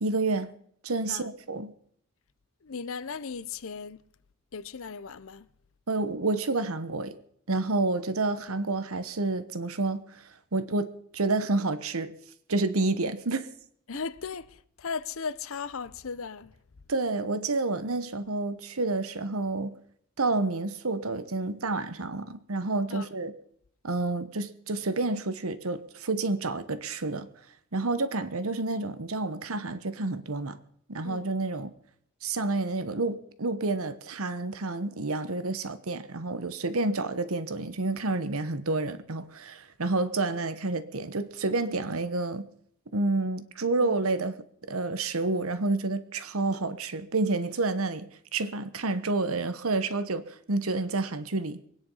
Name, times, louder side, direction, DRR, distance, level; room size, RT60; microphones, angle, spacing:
voice 1, 0.0-0.5 0.8-1.7 5.9-7.2 7.5-12.1 12.5-13.5 16.9-19.7 20.2-23.3 23.8-27.3 27.7-30.6 30.9-31.7 32.2-42.5 42.9-44.3 44.6-51.6, right 3 dB, 75° right, 1.1 m, -29 dB
voice 2, 2.6-4.0 4.5-5.5 13.9-16.5 22.9-23.1 31.0-31.3 43.8-44.0, left 5 dB, 65° left, 0.7 m, -37 dB
23.0 x 9.8 x 5.6 m
head